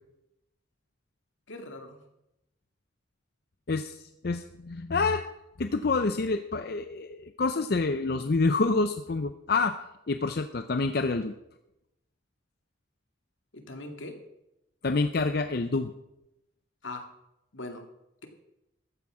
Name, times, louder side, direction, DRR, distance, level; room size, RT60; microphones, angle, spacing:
voice 1, 1.5-2.0 13.5-14.2 16.8-17.0 17.5-17.8, left 2 dB, 80° left, 5 dB, 2.2 m, -40 dB
voice 2, 3.7-5.2 5.6-9.7 10.1-11.3 14.8-15.9, left 3 dB, 55° left, 8 dB, 0.6 m, -27 dB
14.0 x 9.2 x 6.1 m, 0.87 s
head